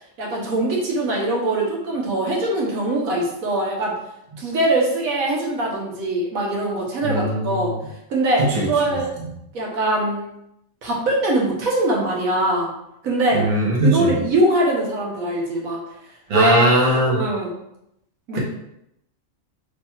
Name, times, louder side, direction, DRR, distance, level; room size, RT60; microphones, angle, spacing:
voice 1, 0.0-3.9 4.4-7.7 8.1-9.1 9.5-10.3 10.8-12.7 13.0-13.4 13.8-15.8 16.3-17.5 18.3-18.4, right 1 dB, 80° right, -2 dB, 1.3 m, -22 dB
voice 2, 7.0-7.6 8.4-8.7 13.3-14.1 16.3-17.2, right 1 dB, 45° right, -3 dB, 0.9 m, -19 dB
3.3 x 2.3 x 4.3 m, 0.81 s
omnidirectional pair, 1.4 m